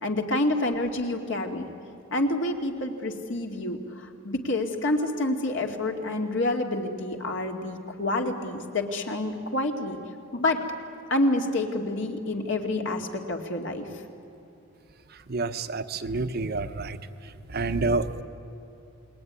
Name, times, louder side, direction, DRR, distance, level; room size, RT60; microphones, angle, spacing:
voice 1, 0.0-1.7 2.1-10.0 10.3-10.6 11.1-13.9, left 2 dB, 65° left, 3 dB, 2.5 m, -28 dB
voice 2, 15.3-16.7 17.5-18.0, right 3 dB, 50° right, 9 dB, 1.0 m, -27 dB
28.5 x 21.5 x 9.7 m, 2.7 s
head